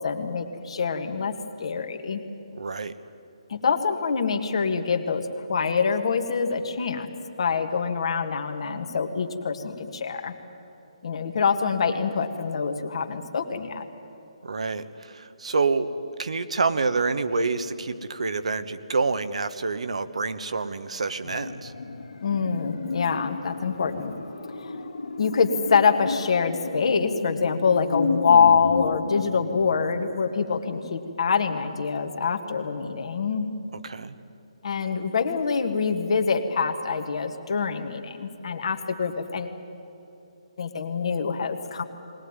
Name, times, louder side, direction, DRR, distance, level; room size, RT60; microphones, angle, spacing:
voice 1, 0.0-2.2 3.5-7.1 7.4-10.3 11.0-13.8 22.2-24.2 24.6-24.8 25.2-33.5 34.6-39.6 40.6-41.8, left 5 dB, 60° left, 6 dB, 1.8 m, -25 dB
voice 2, 2.5-2.9 14.4-15.9 16.2-21.7 33.8-34.1, right 4 dB, 75° right, 11 dB, 1.2 m, -27 dB
sound 1, 21.2-30.4 30.7-30.8, left 3 dB, 80° left, 1.8 m, -33 dB
20.5 x 19.0 x 9.7 m, 2.9 s
hypercardioid pair, 150°, 3 cm